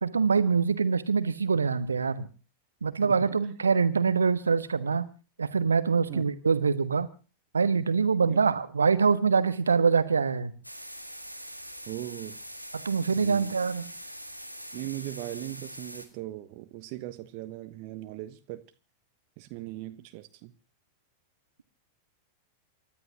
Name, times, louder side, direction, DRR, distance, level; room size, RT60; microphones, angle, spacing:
voice 1, 0.0-2.3 2.8-5.1 5.4-7.1 7.5-10.5 12.7-13.9, right 5 dB, 75° right, 1.2 m, -24 dB
sound 1, 10.6-16.1, equal, 90° left, 2.0 m, -43 dB
voice 2, 11.9-12.4 13.2-13.5 14.7-18.6 19.4-20.5, right 17 dB, 45° right, 1.1 m, -39 dB
28.0 x 13.0 x 2.9 m
figure-of-eight pair, 90°, 0 cm